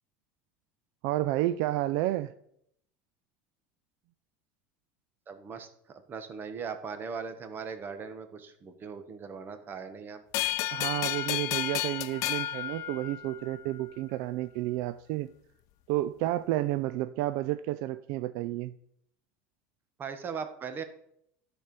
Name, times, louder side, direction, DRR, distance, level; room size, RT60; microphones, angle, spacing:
voice 1, 1.0-2.3 10.7-15.3 15.9-18.7, right 15 dB, 65° right, 13 dB, 0.4 m, -31 dB
voice 2, 5.3-10.2 20.0-20.8, right 6 dB, 35° right, 8 dB, 1.2 m, -39 dB
sound 1, 10.3-13.6, left 13 dB, 60° left, 0.5 m, -32 dB
12.0 x 4.4 x 5.2 m, 0.73 s
supercardioid pair, 110°, 6 cm